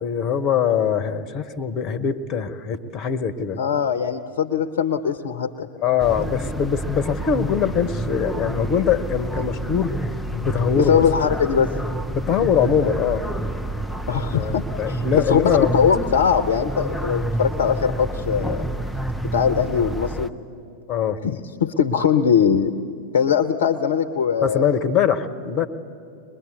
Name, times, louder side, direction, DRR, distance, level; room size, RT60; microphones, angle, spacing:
voice 1, 0.0-3.6 5.8-9.9 10.3-11.1 12.1-13.2 14.3-15.8 16.1-16.3 20.9-21.2 24.4-25.7, left 8 dB, 35° left, 12 dB, 1.0 m, -22 dB
voice 2, 3.6-5.7 10.8-11.7 14.1-18.7 19.3-20.3 21.2-22.7 23.1-24.7, left 7 dB, 60° left, 11 dB, 0.7 m, -21 dB
sound 1, 6.0-20.3, right 1 dB, 5° left, 0.7 m, -29 dB
22.5 x 21.5 x 8.2 m, 2.5 s
figure-of-eight pair, 90°, 0 cm